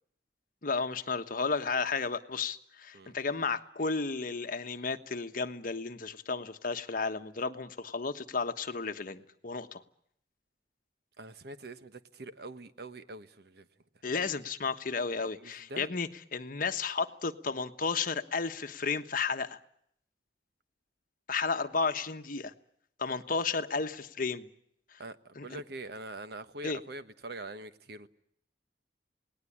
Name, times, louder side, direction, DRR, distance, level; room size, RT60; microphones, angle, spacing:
voice 1, 0.6-9.8 14.0-19.6 21.3-22.5 23.0-24.5 25.4-25.6 26.6-26.8, left 4 dB, 50° left, 8 dB, 1.2 m, -33 dB
voice 2, 11.2-13.7 15.1-15.9 25.0-28.1, right 2 dB, 65° right, 11 dB, 1.2 m, -44 dB
28.5 x 19.0 x 8.7 m, 0.72 s
head